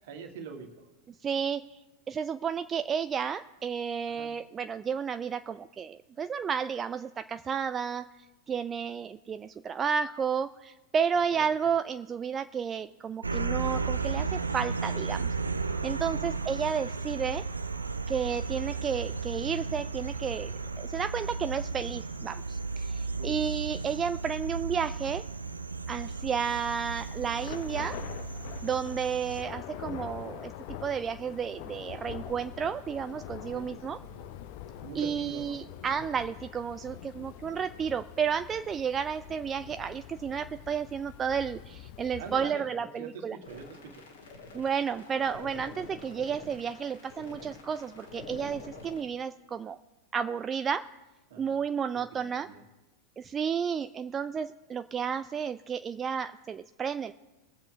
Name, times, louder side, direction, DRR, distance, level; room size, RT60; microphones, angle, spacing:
voice 1, 0.0-0.9 4.1-4.3 11.3-11.5 16.0-16.3 23.2-23.4 33.5-33.6 34.0-34.2 34.8-35.7 42.2-44.0 51.3-51.6 52.1-52.6, right 5 dB, 55° right, 3 dB, 1.8 m, -43 dB
voice 2, 1.2-1.8 2.1-8.1 8.5-15.3 15.8-17.4 18.1-25.2 25.9-28.0 28.6-30.5 30.8-34.0 34.9-43.4 44.5-49.8 50.1-50.8 51.4-52.5 53.2-57.1, right 7 dB, 20° right, 11 dB, 0.3 m, -32 dB
sound 1, 13.2-29.4, right 4 dB, 80° right, 0.5 m, -34 dB
Thunder / Rain, 26.3-42.6, left 11 dB, 50° left, 0.7 m, -45 dB
sound 2, 43.4-49.0, left 3 dB, 65° left, 2.3 m, -46 dB
21.5 x 7.6 x 3.5 m, 1.1 s
figure-of-eight pair, 90°, 0 cm